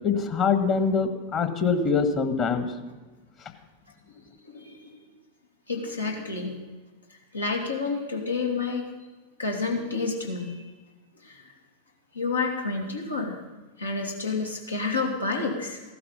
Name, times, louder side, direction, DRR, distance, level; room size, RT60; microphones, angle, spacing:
voice 1, 0.0-2.7, left 5 dB, 35° left, 8 dB, 1.7 m, -24 dB
voice 2, 4.5-4.9 5.7-6.6 7.3-8.8 9.4-10.6 11.2-11.4 12.1-13.4 13.8-15.8, left 4 dB, 80° left, 0 dB, 2.6 m, -29 dB
16.0 x 12.0 x 5.6 m, 1.3 s
figure-of-eight pair, 90°, 0 cm